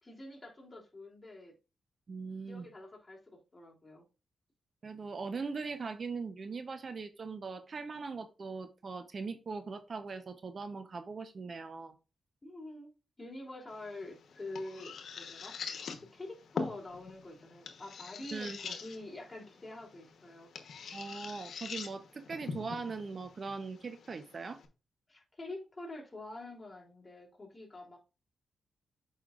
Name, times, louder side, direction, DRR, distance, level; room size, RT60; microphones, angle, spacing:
voice 1, 0.0-1.5 2.5-4.0 12.4-12.9 13.2-15.5 16.0-20.5 25.1-28.0, left 2 dB, 25° left, -1 dB, 3.2 m, -46 dB
voice 2, 2.1-2.7 4.8-11.9 18.3-18.8 20.9-24.6, right 4 dB, 50° right, 9 dB, 0.8 m, -40 dB
sound 1, 13.7-24.7, left 5 dB, 75° left, 1.1 m, -44 dB
8.2 x 5.6 x 2.5 m, 0.31 s
cardioid pair, 65°, 0 cm